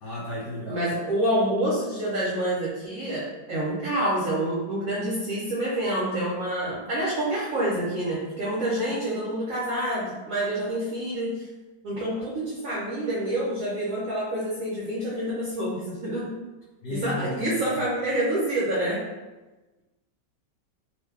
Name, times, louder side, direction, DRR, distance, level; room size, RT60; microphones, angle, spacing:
voice 1, 0.0-0.9 16.8-17.5, left 1 dB, 70° left, -5 dB, 1.1 m, -33 dB
voice 2, 0.7-11.4 11.8-16.3 16.9-19.0, right 1 dB, 60° right, -8 dB, 1.0 m, -27 dB
3.1 x 2.2 x 3.4 m, 1.1 s
omnidirectional pair, 1.9 m